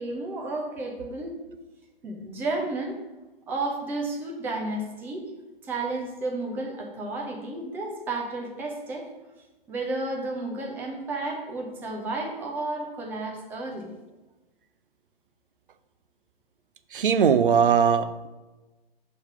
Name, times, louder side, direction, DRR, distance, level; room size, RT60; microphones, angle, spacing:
voice 1, 0.0-1.4 2.0-3.0 3.5-5.2 5.6-9.1 9.7-13.9, right 2 dB, 5° right, 0 dB, 0.5 m, -32 dB
voice 2, 16.9-18.3, right 7 dB, 60° right, 11 dB, 0.5 m, -20 dB
5.6 x 3.3 x 5.4 m, 1.1 s
figure-of-eight pair, 120°, 29 cm